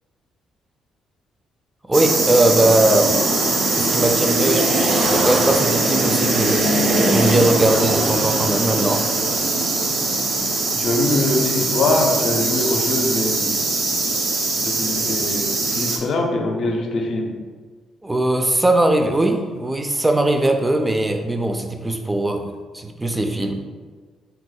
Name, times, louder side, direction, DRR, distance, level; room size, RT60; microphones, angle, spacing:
voice 1, 1.9-3.2 3.7-4.7 5.0-6.6 7.1-9.0 18.0-22.4 22.7-23.6, right 1 dB, 15° right, 4 dB, 0.3 m, -20 dB
sound 1, 1.9-16.0, right 2 dB, 65° right, 0.6 m, -21 dB
voice 2, 10.7-13.7 14.6-17.3, left 2 dB, 60° left, 2 dB, 0.5 m, -23 dB
2.8 x 2.1 x 3.9 m, 1.5 s
cardioid pair, 90°, 0 cm